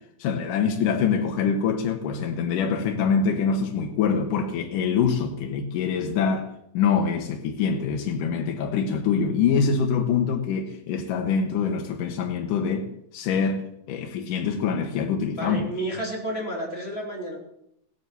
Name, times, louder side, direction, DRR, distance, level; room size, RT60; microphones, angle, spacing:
voice 1, 0.2-6.5 6.7-13.6 13.9-15.7, left 6 dB, 80° left, 2.8 m, -24 dB
voice 2, 15.4-17.4, right 1 dB, 20° left, 3.7 m, -31 dB
16.5 x 9.9 x 6.8 m
omnidirectional pair, 3.8 m